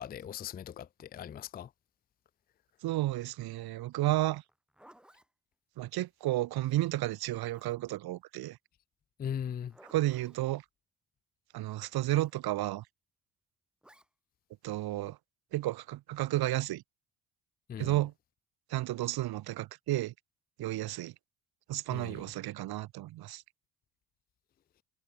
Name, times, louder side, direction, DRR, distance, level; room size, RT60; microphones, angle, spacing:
voice 1, 0.0-1.7 9.2-9.7 17.7-18.0 21.9-22.2, left 9 dB, 25° left, 0.5 m, -39 dB
voice 2, 2.8-4.4 5.8-8.6 9.9-10.6 11.5-12.8 14.6-15.2 15.5-16.8 17.8-18.1 18.7-20.1 20.6-21.1 21.7-23.4, right 16 dB, 65° right, 1.4 m, -32 dB
Zipper (clothing), 4.4-5.3 6.6-8.0 9.4-10.5 12.0-12.4 13.8-14.1, equal, ahead, 4.9 m, -60 dB
cardioid pair, 160°, 41 cm